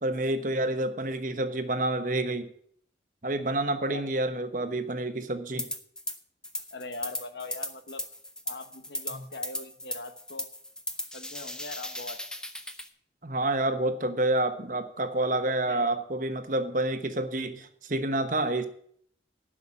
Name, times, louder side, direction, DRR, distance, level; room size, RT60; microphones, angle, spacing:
voice 1, 0.0-2.5 3.2-5.7 9.1-9.2 13.2-18.7, right 2 dB, 45° right, 9 dB, 1.1 m, -28 dB
sound 1, 5.6-6.2 6.4-12.9, left 1 dB, 5° left, 0.7 m, -37 dB
voice 2, 6.7-8.0 8.5-10.5 11.1-12.2 15.5-15.9, left 3 dB, 70° left, 10 dB, 1.0 m, -41 dB
11.0 x 6.0 x 8.5 m, 0.63 s
head